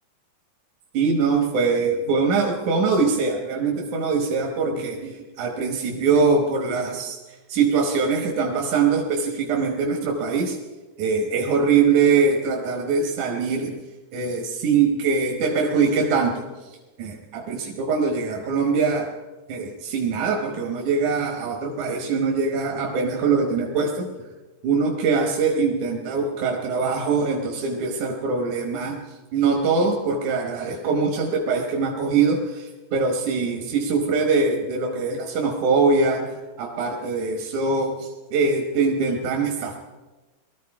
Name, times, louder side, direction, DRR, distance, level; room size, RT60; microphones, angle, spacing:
voice 1, 0.9-10.6 11.0-13.8 14.1-19.1 19.5-24.3 24.6-29.0 29.3-39.8, right 4 dB, 80° right, 1 dB, 2.6 m, -23 dB
19.5 x 13.5 x 4.7 m, 1.2 s
omnidirectional pair, 3.4 m